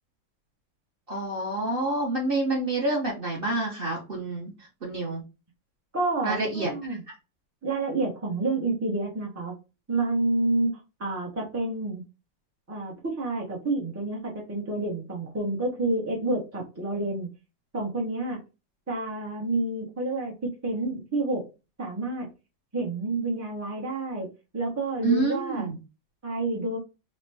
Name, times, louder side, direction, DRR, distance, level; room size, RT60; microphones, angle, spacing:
voice 1, 1.1-4.5 4.8-5.2 6.2-7.0 16.9-17.1 25.0-25.8, right 2 dB, 45° right, -2 dB, 0.7 m, -28 dB
voice 2, 5.9-7.0 7.6-9.5 9.9-10.7 11.0-12.0 12.7-17.3 17.7-18.4 18.9-20.3 20.6-21.4 21.8-22.3 22.7-24.3 24.5-25.7 26.2-26.8, right 2 dB, 25° right, -1 dB, 0.3 m, -29 dB
3.9 x 2.2 x 3.3 m, 0.29 s
omnidirectional pair, 2.1 m